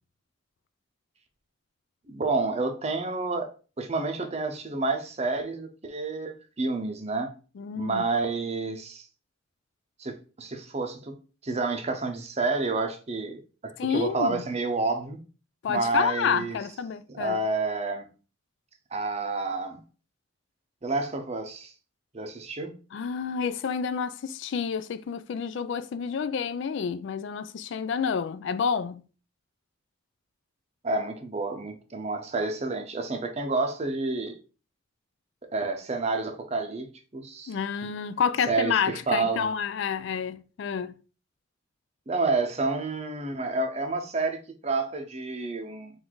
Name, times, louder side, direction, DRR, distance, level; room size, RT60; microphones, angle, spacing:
voice 1, 2.1-7.3 7.8-9.1 10.0-11.1 11.4-15.2 15.7-16.6 17.1-18.0 18.9-19.8 20.8-21.7 22.1-22.8 30.8-34.4 35.4-37.6 38.5-39.5 42.1-45.9, right 3 dB, 30° right, 0.7 m, -29 dB
voice 2, 7.6-8.0 13.8-14.4 15.6-17.4 22.9-29.0 37.5-41.0, left 6 dB, 60° left, 0.3 m, -29 dB
4.0 x 2.6 x 4.5 m
head